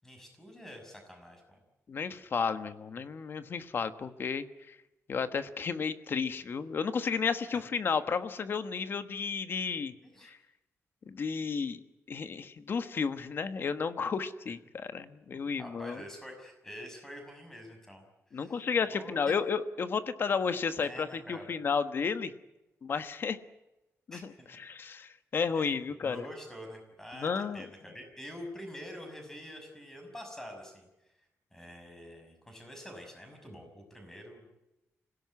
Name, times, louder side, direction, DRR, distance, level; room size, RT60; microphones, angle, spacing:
voice 1, 0.0-1.6 7.5-7.6 10.0-10.3 15.6-18.0 18.3-19.3 20.8-21.6 24.1-24.6 25.5-30.9 31.5-34.5, equal, 10° left, 4 dB, 6.0 m, -47 dB
voice 2, 1.9-4.7 5.1-9.9 10.2-10.4 11.1-11.8 12.1-16.0 18.3-22.3 22.8-23.4 24.1-26.2 27.1-27.6, left 5 dB, 45° left, 11 dB, 1.3 m, -32 dB
25.5 x 17.0 x 9.6 m, 0.98 s
wide cardioid pair, 170°, 5 cm